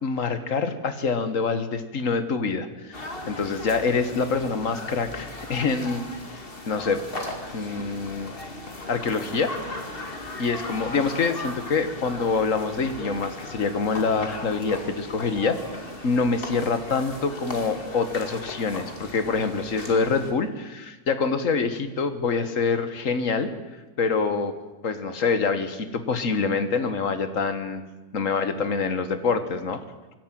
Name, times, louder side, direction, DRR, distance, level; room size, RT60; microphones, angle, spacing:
voice 1, 0.0-6.1 6.3-7.0 7.5-8.3 8.9-9.5 10.4-15.6 16.0-23.5 24.0-24.5 24.8-27.8 28.1-29.8, left 4 dB, 60° left, 10 dB, 1.8 m, -25 dB
sound 1, 2.9-20.3, left 2 dB, 35° left, 2.5 m, -37 dB
23.5 x 12.5 x 9.2 m, 1.2 s
omnidirectional pair, 1.6 m